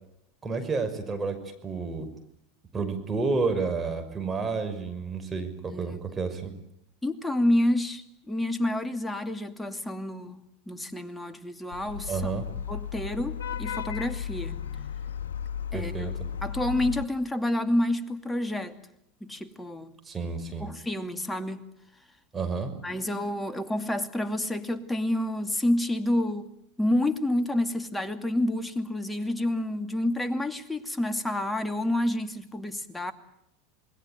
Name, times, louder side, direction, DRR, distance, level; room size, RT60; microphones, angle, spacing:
voice 1, 0.4-2.1 2.7-6.5 12.1-12.5 15.7-16.1 20.0-20.7 22.3-22.7, right 4 dB, 20° right, 5.9 m, -30 dB
voice 2, 5.7-6.0 7.0-10.4 10.7-12.3 12.7-14.6 15.7-16.1 16.4-18.8 19.2-19.9 20.6-21.7 22.8-26.5 26.8-33.1, left 1 dB, 10° left, 2.6 m, -29 dB
Vehicle horn car horn honking / Traffic noise roadway noise, 11.7-17.0, left 8 dB, 80° left, 1.8 m, -34 dB
28.0 x 21.0 x 9.2 m
hypercardioid pair, 90°, 0 cm